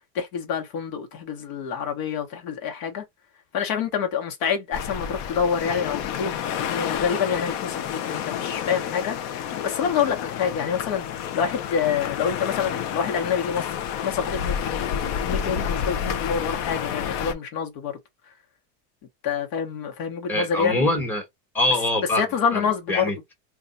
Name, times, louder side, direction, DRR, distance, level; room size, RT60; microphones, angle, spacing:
voice 1, 0.1-3.0 3.5-13.6 14.0-14.9 15.2-17.9 19.2-20.9 22.2-23.1, left 7 dB, 65° left, 1.1 m, -27 dB
sound 1, 4.7-17.3, left 8 dB, 40° left, 0.4 m, -29 dB
voice 2, 20.3-21.2 21.5-22.2 22.5-23.3, left 2 dB, 5° left, 1.0 m, -24 dB
2.3 x 2.3 x 3.9 m
supercardioid pair, 140°, 45 cm